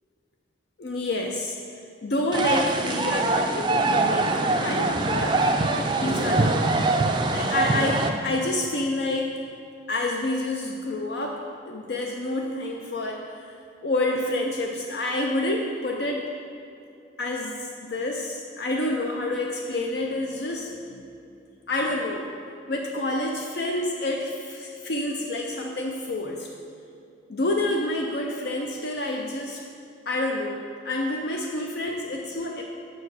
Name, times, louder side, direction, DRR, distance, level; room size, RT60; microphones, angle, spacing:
voice 1, 0.8-1.6 2.0-5.4 6.0-6.7 7.3-9.3 9.9-13.5 13.8-16.3 17.2-21.0 21.7-22.3 22.7-26.5 27.3-29.6 30.1-32.6, left 2 dB, 60° left, 1 dB, 0.5 m, -28 dB
sound 1, 2.3-8.1, right 3 dB, 25° right, 0.4 m, -23 dB
5.9 x 4.6 x 6.2 m, 2.5 s
head